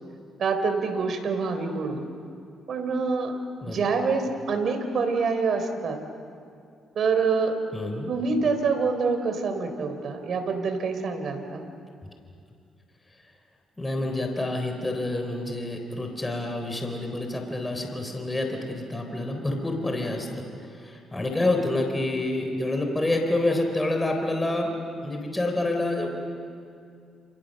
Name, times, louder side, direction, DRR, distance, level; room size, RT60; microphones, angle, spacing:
voice 1, 0.4-2.0 2.7-3.3 3.6-6.0 7.0-7.6 8.1-11.6, right 4 dB, 60° right, 6 dB, 4.0 m, -26 dB
voice 2, 7.7-8.1 13.8-20.4 20.8-24.8 25.0-26.1, left 2 dB, 15° left, 3 dB, 3.9 m, -28 dB
30.0 x 29.0 x 6.7 m, 2.4 s
cardioid pair, 90°, 0 cm